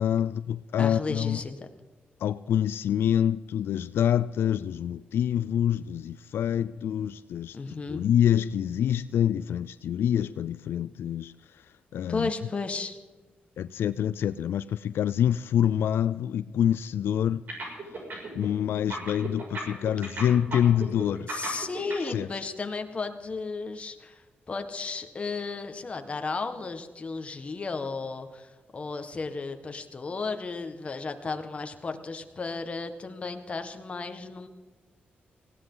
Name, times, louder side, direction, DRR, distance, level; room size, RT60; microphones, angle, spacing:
voice 1, 0.0-1.4 2.2-7.6 7.9-11.3 11.9-12.3 13.6-17.4 18.3-21.3 22.1-22.3, left 10 dB, 85° left, 0.4 m, -26 dB
voice 2, 0.8-1.6 7.5-8.0 12.1-13.0 21.3-24.2 24.5-34.5, left 4 dB, 35° left, 1.6 m, -34 dB
sound 1, 17.5-18.5 18.8-22.1, right 3 dB, 55° right, 6.5 m, -35 dB
19.0 x 17.0 x 3.9 m
wide cardioid pair, 125°, 4 cm